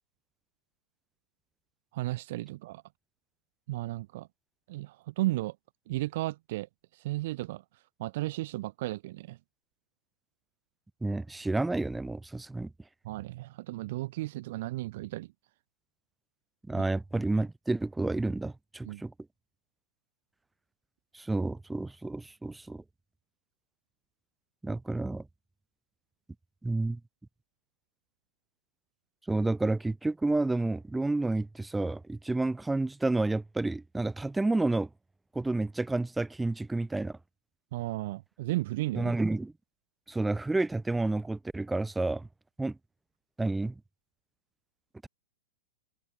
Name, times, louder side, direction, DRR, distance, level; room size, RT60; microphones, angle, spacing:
voice 1, 1.9-2.8 3.7-4.3 4.7-5.6 5.9-6.7 7.0-7.6 8.0-9.4 13.0-15.3 16.7-16.8 18.8-19.0 37.7-39.1, right 18 dB, 50° right, 4.0 m, -34 dB
voice 2, 11.0-12.7 16.7-19.1 21.1-22.8 24.6-25.2 26.6-27.0 29.3-34.9 35.3-37.2 38.9-39.5 40.1-42.2 42.6-42.8 43.4-43.7, right 2 dB, 5° right, 2.9 m, -30 dB
figure-of-eight pair, 100°, 0 cm